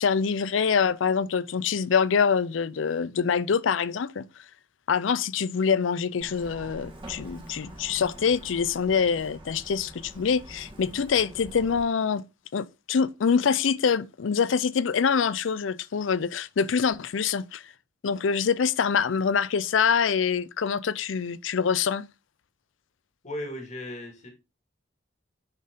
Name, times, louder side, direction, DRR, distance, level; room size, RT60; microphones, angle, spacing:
voice 1, 0.0-4.2 4.9-12.2 12.5-17.6 18.0-22.0, left 6 dB, 85° left, 0.5 m, -25 dB
Truck, 6.2-11.8, right 1 dB, 25° right, 1.7 m, -45 dB
voice 2, 23.2-24.3, left 1 dB, 40° left, 2.3 m, -36 dB
9.7 x 4.3 x 3.7 m
head